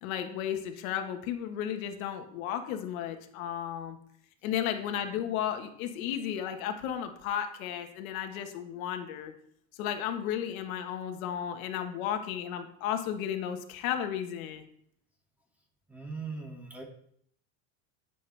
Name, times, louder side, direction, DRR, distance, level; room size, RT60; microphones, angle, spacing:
voice 1, 0.0-4.0 4.4-9.3 9.7-14.6, left 9 dB, 90° left, 6 dB, 1.6 m, -34 dB
voice 2, 15.9-16.8, right 4 dB, 5° right, 0 dB, 2.4 m, -39 dB
16.0 x 7.4 x 3.4 m, 0.65 s
supercardioid pair, 135°, 41 cm